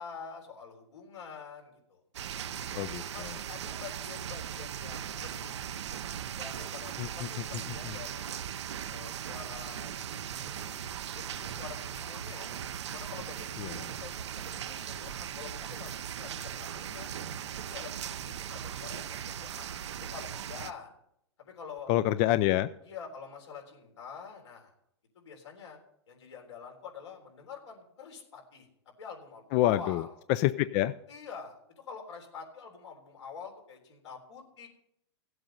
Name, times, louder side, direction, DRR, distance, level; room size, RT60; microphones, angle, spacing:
voice 1, 0.0-2.0 2.5-2.8 3.1-5.5 6.4-8.5 8.9-9.9 10.4-10.8 11.2-12.5 12.8-17.1 17.5-19.7 20.0-20.9 21.4-21.9 22.9-24.7 25.1-25.8 26.1-28.7 29.0-30.1 31.1-34.7, left 6 dB, 85° left, 1 dB, 3.8 m, -46 dB
sound 1, 2.1-20.7, right 9 dB, 80° right, 0.6 m, -39 dB
voice 2, 2.8-3.4 7.0-7.9 13.6-13.8 21.9-22.7 29.5-30.0 30.3-30.9, left 14 dB, 40° left, 14 dB, 0.4 m, -28 dB
15.5 x 8.0 x 5.4 m, 0.73 s
hypercardioid pair, 125°, 14 cm